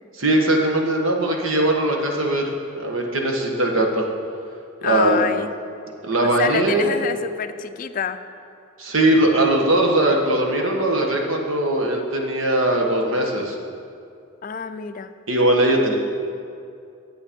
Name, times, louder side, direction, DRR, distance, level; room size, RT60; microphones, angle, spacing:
voice 1, 0.2-4.0 4.8-5.2 6.0-6.9 8.8-13.5 15.3-16.0, right 1 dB, 85° right, 1 dB, 1.3 m, -20 dB
voice 2, 4.8-5.5 6.2-8.2 14.4-15.1, left 7 dB, 40° left, 10 dB, 0.4 m, -27 dB
10.0 x 7.8 x 5.2 m, 2.4 s
head